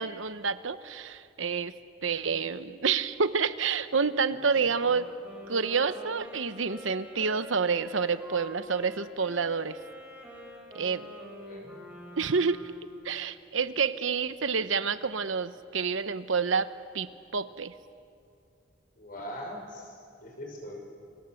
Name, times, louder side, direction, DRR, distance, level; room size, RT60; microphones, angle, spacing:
voice 1, 0.0-1.7 2.0-5.1 5.5-9.8 10.7-11.1 12.2-12.7 13.0-16.7 16.9-17.7, right 5 dB, 75° right, 12 dB, 1.0 m, -28 dB
Wind instrument woodwind instrument, 4.7-13.0, equal, 5° right, 4.6 m, -46 dB
voice 2, 11.4-11.8 19.0-19.9 20.2-20.8, equal, 45° left, 2 dB, 6.0 m, -41 dB
29.0 x 25.0 x 7.9 m, 2.5 s
head